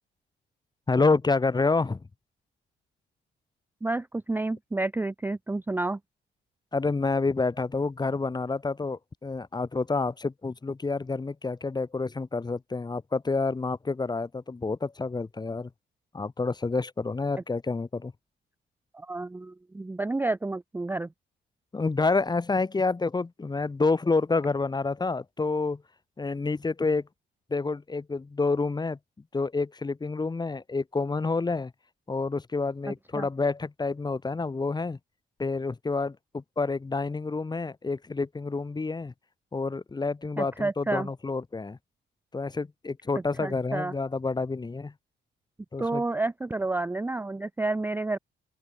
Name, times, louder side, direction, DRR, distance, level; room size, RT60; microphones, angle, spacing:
voice 1, 0.9-2.0 6.7-15.7 16.1-18.1 21.7-25.8 26.2-27.0 27.5-29.0 29.3-31.7 32.1-35.0 35.4-39.1 39.5-41.8 42.3-44.9 45.7-46.0, left 3 dB, 20° left, 1.1 m, -28 dB
voice 2, 3.8-6.0 18.9-21.1 32.9-33.3 40.4-41.1 43.4-43.9 45.8-48.2, right 2 dB, 10° right, 0.5 m, -30 dB
open air
cardioid pair, 90°, 20 cm